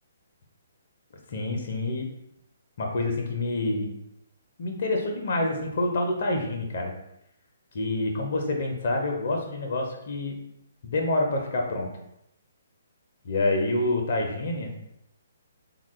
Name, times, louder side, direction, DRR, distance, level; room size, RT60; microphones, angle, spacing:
voice 1, 1.3-2.1 2.8-3.9 4.6-6.9 7.7-10.4 10.8-11.9 13.2-14.7, left 2 dB, 50° left, 2 dB, 0.5 m, -27 dB
3.6 x 2.2 x 3.0 m, 0.80 s
figure-of-eight pair, 130°, 0 cm